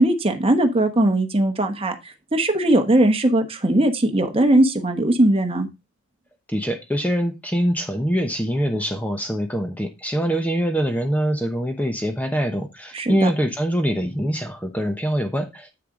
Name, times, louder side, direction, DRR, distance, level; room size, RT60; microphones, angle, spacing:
voice 1, 0.0-5.7 12.9-13.3, right 1 dB, 25° right, 1.1 m, -19 dB
voice 2, 6.5-15.8, equal, 5° left, 0.9 m, -24 dB
8.0 x 6.7 x 3.8 m
head